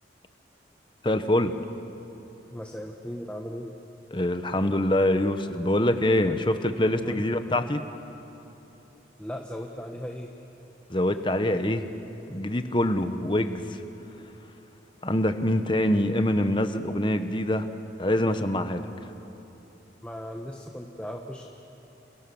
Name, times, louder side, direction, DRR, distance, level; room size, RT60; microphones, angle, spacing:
voice 1, 1.0-1.5 4.1-7.8 10.9-11.9 12.3-13.8 15.0-17.7 18.0-18.9, left 1 dB, 25° left, 8 dB, 1.2 m, -24 dB
voice 2, 2.5-3.7 7.0-7.3 9.2-10.3 20.0-21.5, equal, 5° left, 2 dB, 1.1 m, -37 dB
29.0 x 28.5 x 7.1 m, 3.0 s
head